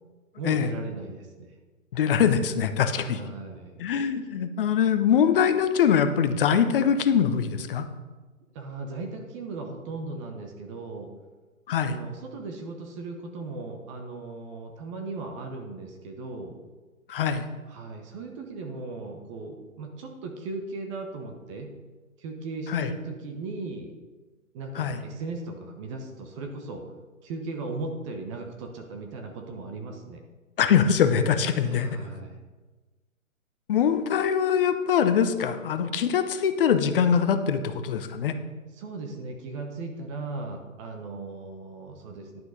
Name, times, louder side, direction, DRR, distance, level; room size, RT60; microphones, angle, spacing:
voice 1, 0.4-1.5 2.9-3.9 8.5-11.1 11.8-16.6 17.7-21.7 22.2-23.9 24.5-26.9 27.2-30.2 31.6-32.5 38.7-42.4, right 3 dB, 25° right, 3 dB, 0.9 m, -37 dB
voice 2, 1.9-3.2 3.8-7.9 11.7-12.0 17.1-17.4 22.7-22.9 24.8-25.0 30.6-32.0 33.7-38.3, left 7 dB, 40° left, 9 dB, 0.8 m, -23 dB
10.5 x 6.0 x 5.1 m, 1.3 s
figure-of-eight pair, 130°, 41 cm